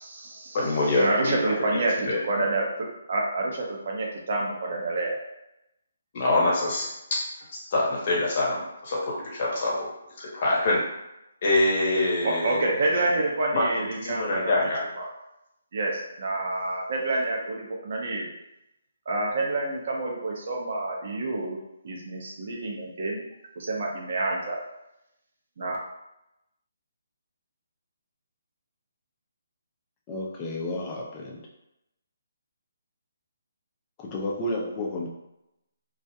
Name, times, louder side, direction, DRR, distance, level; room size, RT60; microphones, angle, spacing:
voice 1, 0.0-0.7 1.0-5.2 12.0-14.6 15.0-15.1 15.7-18.3 19.1-21.6 21.8-23.2 23.6-24.6 25.6-25.8, right 2 dB, 50° right, -1 dB, 0.7 m, -28 dB
voice 2, 0.5-1.5 2.1-2.2 6.1-7.2 7.7-9.9 10.2-10.8 11.4-12.6 13.5-13.6 14.1-14.8, left 2 dB, 40° left, -4 dB, 0.9 m, -25 dB
voice 3, 30.1-31.4 34.0-35.1, left 1 dB, 20° left, -2 dB, 0.5 m, -32 dB
2.3 x 2.1 x 2.7 m, 0.88 s
hypercardioid pair, 160°, 0 cm